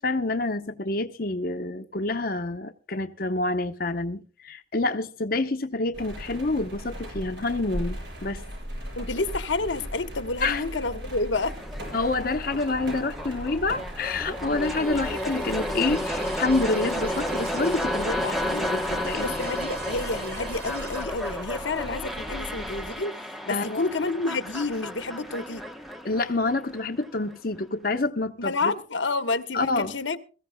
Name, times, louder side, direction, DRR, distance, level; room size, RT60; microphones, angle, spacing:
voice 1, 0.0-8.4 10.4-10.6 11.9-19.3 23.5-23.8 26.0-28.7 29.5-29.9, left 2 dB, 50° left, 0.8 m, -27 dB
sound 1, 5.9-23.0, equal, 75° right, 7.8 m, -38 dB
voice 2, 9.0-11.6 18.0-18.7 19.2-23.1 23.5-25.6 28.4-30.2, left 3 dB, 90° left, 1.2 m, -29 dB
sound 2, 11.3-27.4, left 1 dB, ahead, 0.9 m, -33 dB
sound 3, 14.6-21.0, right 4 dB, 55° right, 2.4 m, -41 dB
22.5 x 14.5 x 2.2 m
head